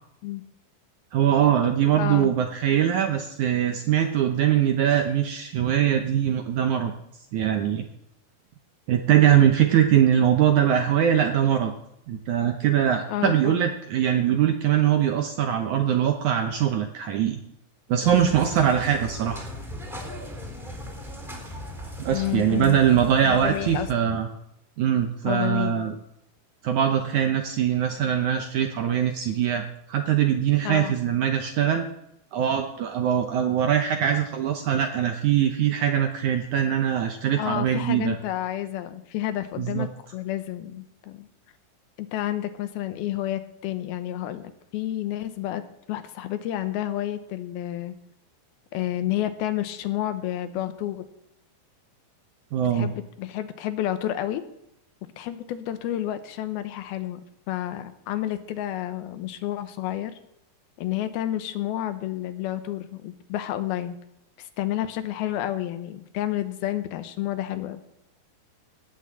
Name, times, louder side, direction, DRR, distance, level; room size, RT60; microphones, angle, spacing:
voice 1, 1.1-6.9 7.3-7.9 8.9-11.7 12.1-17.4 17.9-19.4 22.0-24.3 24.8-25.9 26.6-31.8 32.3-38.2 39.6-39.9 52.5-52.9, right 9 dB, 70° right, 5 dB, 1.9 m, -22 dB
voice 2, 2.0-2.3 13.1-13.6 22.1-22.8 23.2-24.2 25.3-25.9 30.6-30.9 37.4-41.3 42.0-47.9 48.7-51.1 52.7-54.4 55.2-57.2 57.5-60.1 60.8-63.9 64.4-67.8, left 13 dB, 80° left, 10 dB, 2.8 m, -30 dB
sound 1, 18.0-24.0, equal, ahead, 3.0 m, -38 dB
18.0 x 6.3 x 7.5 m, 0.80 s
omnidirectional pair, 4.4 m